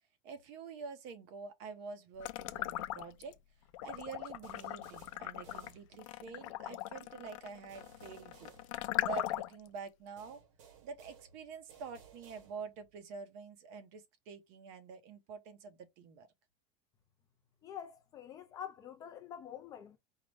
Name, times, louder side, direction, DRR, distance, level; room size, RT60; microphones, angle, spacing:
voice 1, 0.2-3.4 3.8-8.5 9.0-10.4 10.8-16.3, right 6 dB, 50° right, 0.8 m, -47 dB
sound 1, 2.2-3.3 3.7-9.7, left 15 dB, 85° left, 0.4 m, -39 dB
sound 2, 4.4-6.4 7.7-9.4 10.2-12.9, right 6 dB, 80° right, 1.1 m, -60 dB
voice 2, 17.6-20.0, left 9 dB, 20° left, 0.3 m, -46 dB
4.7 x 2.1 x 3.3 m
supercardioid pair, 175°, 16 cm